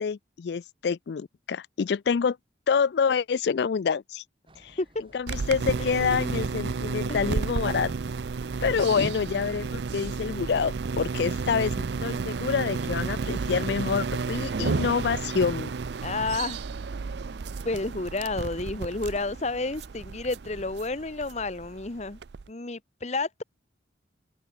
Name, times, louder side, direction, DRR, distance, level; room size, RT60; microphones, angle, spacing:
voice 1, 0.0-2.4 2.7-4.2 4.6-4.8 5.1-7.9 8.6-15.7, left 6 dB, 60° left, 0.4 m, -27 dB
sound 1, 4.5-21.7, right 1 dB, 30° right, 6.4 m, -58 dB
sound 2, 5.3-22.5, right 4 dB, 65° right, 0.5 m, -32 dB
voice 2, 5.8-6.3 7.1-7.5 8.7-9.1 16.0-16.6 17.6-22.2 22.5-23.4, left 3 dB, 35° left, 1.0 m, -31 dB
open air
head